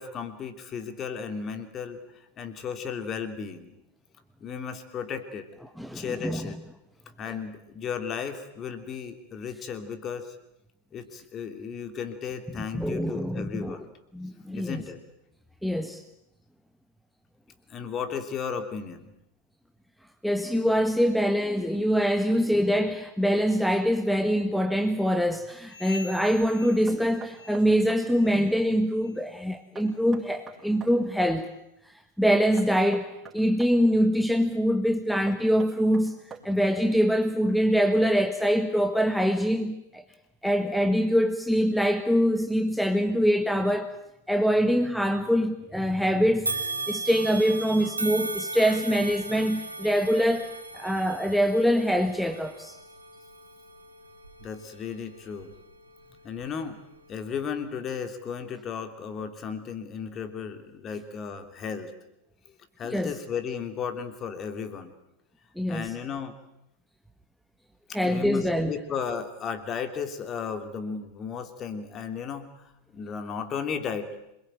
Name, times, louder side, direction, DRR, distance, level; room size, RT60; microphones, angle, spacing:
voice 1, 0.0-2.0 2.4-3.7 4.4-5.4 5.9-6.6 7.2-10.3 10.9-13.9 14.5-15.0 17.7-19.1 54.4-55.5 56.2-56.8 57.1-61.9 62.8-64.9 65.7-66.3 67.9-74.1, left 6 dB, 30° left, 3.1 m, -35 dB
voice 2, 5.8-6.4 12.7-13.8 14.1-14.8 15.6-16.0 20.2-31.5 32.2-36.2 36.4-40.0 40.4-43.9 44.3-46.5 46.9-50.5 50.7-52.8 62.9-63.1 65.6-65.9 67.9-68.7, equal, ahead, 1.5 m, -24 dB
sound 1, 25.6-27.9 28.1-28.5 29.0-29.2 29.8-30.0 30.7-30.8 31.5-31.6, left 4 dB, 60° left, 4.5 m, -46 dB
Knock, 26.9-28.1 29.8-31.0 32.6-33.8 35.3-36.7, right 6 dB, 15° right, 5.4 m, -45 dB
sound 2, 46.5-55.8 56.3-56.4 57.4-57.5, right 3 dB, 80° right, 2.6 m, -37 dB
27.0 x 22.0 x 9.1 m
figure-of-eight pair, 90°, 0 cm